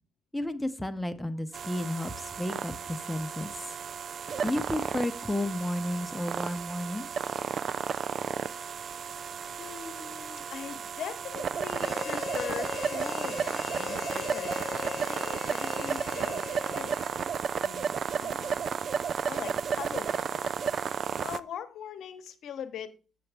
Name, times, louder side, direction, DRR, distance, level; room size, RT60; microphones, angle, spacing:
voice 1, 0.3-3.7 4.4-7.1, left 1 dB, 5° left, 7 dB, 0.7 m, -32 dB
sound 1, 1.5-21.4, right 7 dB, 55° right, 0.3 m, -33 dB
voice 2, 9.6-14.6 15.1-16.9 17.6-18.6 19.2-20.5 21.1-23.0, left 8 dB, 70° left, 9 dB, 0.8 m, -41 dB
Harmonica, 11.7-17.5, left 7 dB, 50° left, 0.4 m, -39 dB
7.6 x 7.0 x 3.4 m, 0.35 s
cardioid pair, 90°, 0 cm